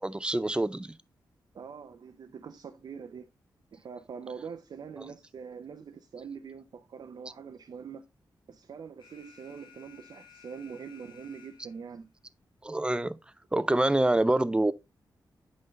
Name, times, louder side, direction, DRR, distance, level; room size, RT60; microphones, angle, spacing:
voice 1, 0.0-0.9 12.6-13.2 13.5-14.7, right 1 dB, 10° right, 0.4 m, -26 dB
voice 2, 1.5-3.3 3.7-8.0 8.5-12.1, right 6 dB, 65° right, 0.6 m, -44 dB
Alarm, 9.0-12.0, left 7 dB, 90° left, 1.3 m, -56 dB
7.7 x 5.3 x 3.1 m
wide cardioid pair, 100°, 8 cm